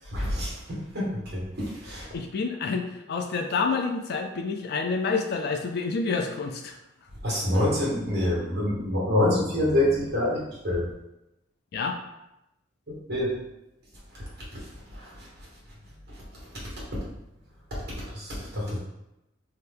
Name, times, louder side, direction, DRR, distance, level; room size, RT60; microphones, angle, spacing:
voice 1, 0.1-2.1 7.2-10.9 13.1-13.3 14.1-14.2 14.5-15.3 18.1-18.8, left 1 dB, 50° right, -6 dB, 1.3 m, -27 dB
voice 2, 2.1-6.7 11.7-12.0, left 4 dB, 55° left, 4 dB, 0.3 m, -28 dB
2.7 x 2.2 x 3.4 m, 0.90 s
head